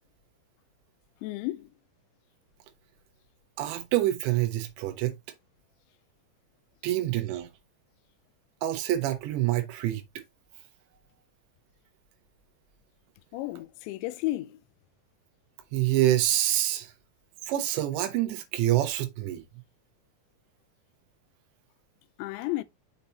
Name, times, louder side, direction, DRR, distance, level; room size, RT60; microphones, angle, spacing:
voice 1, 1.2-1.7 13.3-14.6 22.2-22.6, left 17 dB, 85° left, 2.8 m, -32 dB
voice 2, 3.6-5.1 6.8-7.5 8.6-10.0 15.7-16.9 17.5-19.4, right 14 dB, 75° right, 3.2 m, -26 dB
6.9 x 5.6 x 2.9 m
omnidirectional pair, 5.3 m